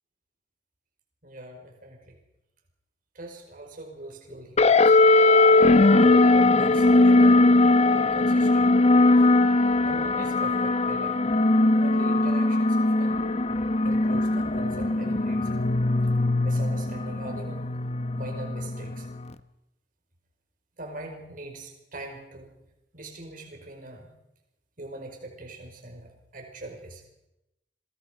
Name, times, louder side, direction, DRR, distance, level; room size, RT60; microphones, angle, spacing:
voice 1, 1.2-2.2 3.2-5.0 5.6-7.4 7.9-8.7 9.8-11.2 11.8-13.2 13.8-15.6 16.4-17.7 18.1-19.1 20.8-22.5 22.9-24.1 24.8-27.0, right 2 dB, 50° right, 2 dB, 5.2 m, -41 dB
sound 1, 4.6-19.3, left 2 dB, 40° left, 0.9 m, -20 dB
28.5 x 21.5 x 5.2 m, 0.88 s
head